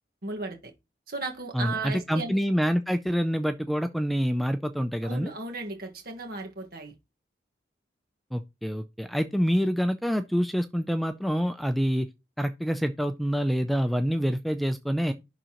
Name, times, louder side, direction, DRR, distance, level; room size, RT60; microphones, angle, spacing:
voice 1, 0.2-0.6 1.1-2.4 5.0-6.9, right 3 dB, 55° right, 1.6 m, -35 dB
voice 2, 1.5-5.3 8.3-12.1 12.4-15.1, equal, ahead, 0.4 m, -26 dB
11.0 x 3.8 x 3.0 m
head